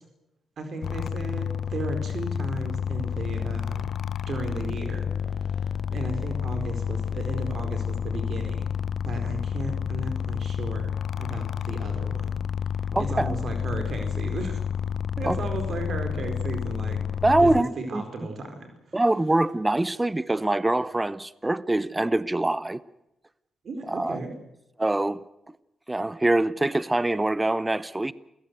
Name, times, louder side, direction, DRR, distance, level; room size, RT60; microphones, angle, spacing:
voice 1, 0.6-3.9 4.3-5.1 5.4-8.7 9.0-10.9 11.2-12.4 13.0-14.6 15.2-17.0 17.4-19.0 23.6-24.3, right 3 dB, 60° right, 6 dB, 4.4 m, -35 dB
sound 1, 0.8-17.6, left 8 dB, 65° left, 0.8 m, -30 dB
voice 2, 12.9-13.3 15.2-15.4 17.2-18.0 18.9-22.8 23.9-24.2 24.8-25.2 25.9-28.1, right 2 dB, 15° right, 18 dB, 0.8 m, -24 dB
28.5 x 16.5 x 8.1 m, 0.90 s
cardioid pair, 65°, 0 cm